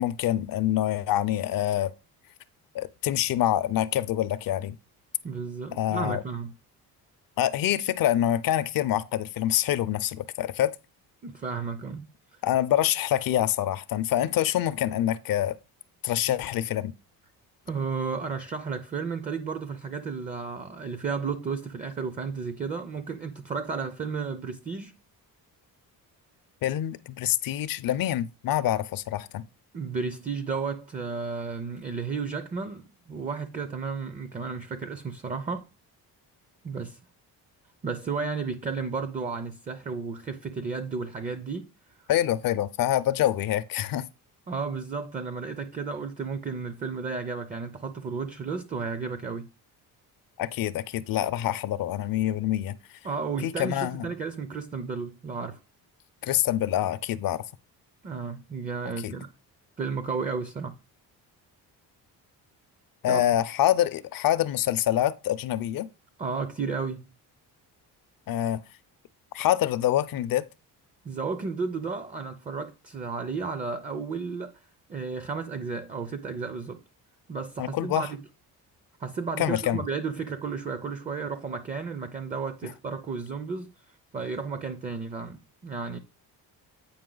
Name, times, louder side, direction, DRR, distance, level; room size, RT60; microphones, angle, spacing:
voice 1, 0.0-1.9 2.7-4.8 5.7-6.2 7.4-10.7 12.4-15.6 16.0-16.9 26.6-29.4 42.1-44.1 50.4-52.8 53.4-54.1 56.2-57.4 59.0-59.1 63.0-65.9 68.3-68.6 69.3-70.4 77.6-78.1 79.4-79.8, left 12 dB, 60° left, 0.5 m, -26 dB
voice 2, 5.2-6.5 11.2-12.1 17.7-25.0 29.7-35.7 36.6-37.0 37.8-41.7 44.5-49.5 53.0-55.6 58.0-59.3 59.8-60.7 63.1-63.3 66.2-67.1 71.0-74.6 74.9-76.8 77.3-78.2 79.0-83.7 84.1-86.0, right 5 dB, 20° right, 0.4 m, -33 dB
8.6 x 5.2 x 3.8 m
cardioid pair, 165°, 39 cm